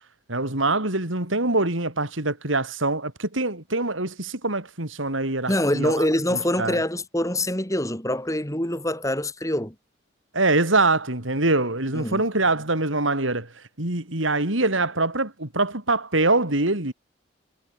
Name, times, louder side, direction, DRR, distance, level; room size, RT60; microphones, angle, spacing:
voice 1, 0.3-6.1 6.3-6.8 10.3-16.9, right 2 dB, 80° right, 4.8 m, -24 dB
voice 2, 5.5-9.7 11.9-12.3, left 1 dB, 15° left, 4.9 m, -25 dB
head